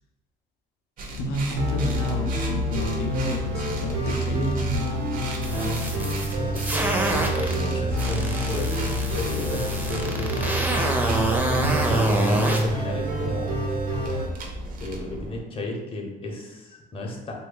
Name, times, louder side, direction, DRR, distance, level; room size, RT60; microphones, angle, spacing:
sound 1, 1.0-15.4, right 1 dB, 55° right, 0.6 m, -36 dB
voice 1, 1.2-4.9 11.6-12.0, equal, 75° left, 3 dB, 0.6 m, -29 dB
sound 2, 1.6-14.3, equal, 80° right, 0.8 m, -27 dB
sound 3, 5.3-7.6 8.0-12.6, right 1 dB, 10° right, 0.5 m, -27 dB
voice 2, 5.4-6.8 7.3-10.7 11.5-13.6 14.8-17.3, left 2 dB, 35° left, 0 dB, 0.7 m, -33 dB
3.1 x 2.2 x 3.7 m, 1.1 s
cardioid pair, 110°, 17 cm